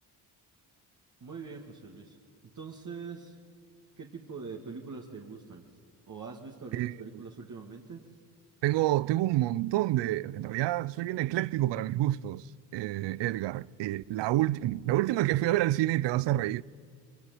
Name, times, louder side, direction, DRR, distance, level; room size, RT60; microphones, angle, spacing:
voice 1, 1.2-2.1 2.5-3.3 4.0-5.6 6.1-8.0, right 5 dB, 45° right, 2.3 m, -43 dB
voice 2, 8.6-12.5 12.7-16.6, right 15 dB, 85° right, 0.6 m, -28 dB
24.5 x 23.0 x 9.5 m
cardioid pair, 80°, 42 cm